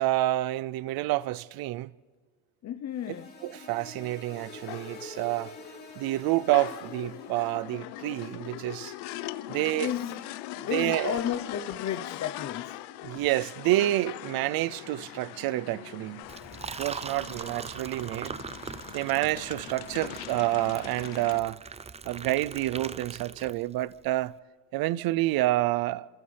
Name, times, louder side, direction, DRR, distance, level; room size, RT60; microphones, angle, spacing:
voice 1, 0.0-1.9 3.4-5.5 6.0-8.9 9.5-9.9 10.6-11.2 13.0-16.2 16.8-18.4 18.9-21.6 22.0-24.3 24.7-26.1, right 16 dB, 65° right, 0.6 m, -28 dB
voice 2, 2.6-3.3 9.8-10.3 10.6-12.8 17.2-17.3, left 9 dB, 45° left, 0.8 m, -33 dB
sound 1, 2.9-7.7, left 2 dB, 25° left, 3.1 m, -46 dB
sound 2, 3.8-21.4, left 15 dB, 85° left, 0.8 m, -41 dB
Liquid, 16.2-23.9, right 5 dB, 15° right, 0.5 m, -41 dB
29.5 x 27.0 x 3.4 m
cardioid pair, 105°, 38 cm